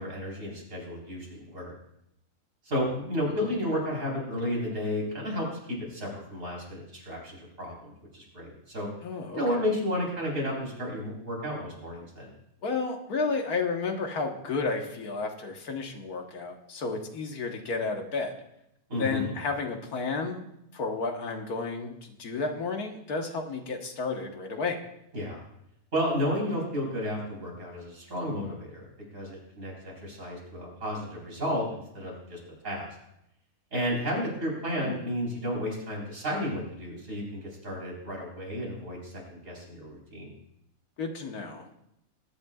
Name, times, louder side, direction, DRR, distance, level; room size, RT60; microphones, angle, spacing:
voice 1, 0.0-1.7 2.7-8.9 9.3-12.3 18.9-19.3 25.1-25.4 25.9-28.9 29.1-32.4 32.6-32.9 33.7-40.3, equal, 60° right, -3 dB, 4.5 m, -32 dB
voice 2, 9.0-9.4 12.6-18.3 19.0-20.4 20.7-24.8 34.8-35.0 41.0-41.7, left 4 dB, 85° left, 3 dB, 1.8 m, -32 dB
21.0 x 10.5 x 2.4 m, 0.81 s
omnidirectional pair, 1.5 m